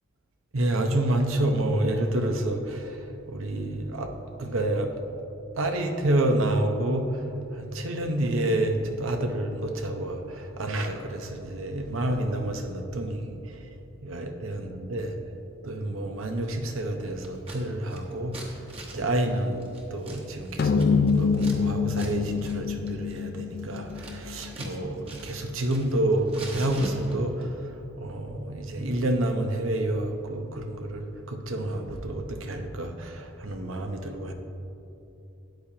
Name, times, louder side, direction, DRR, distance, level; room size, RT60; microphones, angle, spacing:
voice 1, 0.5-4.1 4.4-4.9 5.5-7.2 7.6-13.4 14.0-15.2 15.6-18.4 18.9-27.5 28.0-34.3, right 1 dB, 80° right, 4 dB, 0.8 m, -28 dB
Scissors, 17.2-17.6 17.9-21.6 21.9-22.1 22.4-22.6 22.9-24.8 25.0-26.0 26.3-27.4, right 1 dB, 30° right, 1.2 m, -41 dB
sound 1, 20.6-25.2, left 5 dB, 50° left, 0.3 m, -26 dB
13.0 x 8.8 x 2.8 m, 2.8 s
head